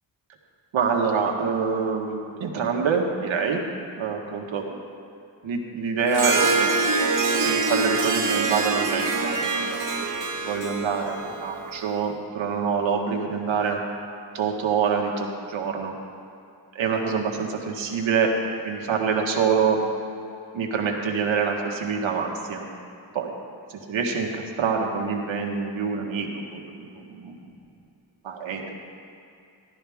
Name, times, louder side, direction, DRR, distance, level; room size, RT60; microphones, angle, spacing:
voice 1, 0.7-3.6 3.9-4.6 5.4-6.7 7.4-9.9 10.4-13.8 14.3-15.9 16.7-18.3 18.6-19.8 20.5-22.7 23.1-23.3 23.9-27.4 28.2-28.8, right 6 dB, 90° right, 1 dB, 1.5 m, -26 dB
Harp, 6.1-11.8, right 3 dB, 45° right, 1.4 m, -24 dB
15.0 x 12.0 x 3.5 m, 2.6 s
cardioid pair, 80°, 45 cm